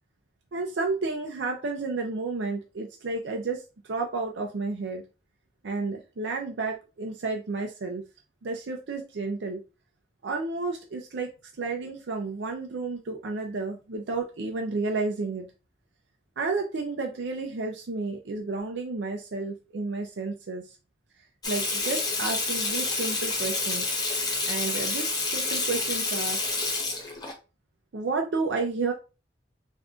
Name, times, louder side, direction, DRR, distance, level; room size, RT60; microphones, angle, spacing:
voice 1, 0.5-5.0 5.6-8.0 8.4-9.6 10.2-11.3 11.6-15.5 16.4-20.8 21.5-24.0 24.4-26.4 27.9-28.9, right 3 dB, 80° right, 0.5 m, -31 dB
Water tap faucet / Sink (filling or washing), 21.4-27.3, left 3 dB, 20° left, 0.6 m, -28 dB
3.6 x 2.6 x 2.3 m
head